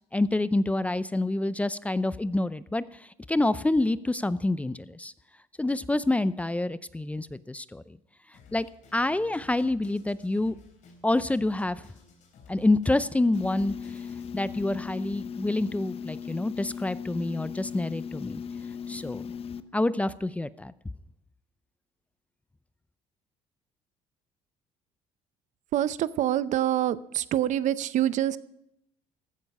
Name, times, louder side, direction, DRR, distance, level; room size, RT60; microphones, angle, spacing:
voice 1, 0.1-2.8 3.3-5.1 5.6-8.0 8.5-8.7 8.9-10.5 11.0-11.8 12.5-14.0 14.3-18.4 18.9-19.3 19.7-20.7, left 2 dB, 10° left, 16 dB, 0.5 m, -27 dB
Drum kit, 8.3-14.3, left 4 dB, 60° left, 3.7 m, -55 dB
sound 1, 13.3-19.6, left 7 dB, 45° left, 0.7 m, -38 dB
voice 2, 25.7-28.4, right 12 dB, 60° right, 17 dB, 0.6 m, -26 dB
15.0 x 9.0 x 5.4 m, 0.80 s
cardioid pair, 100°, 14 cm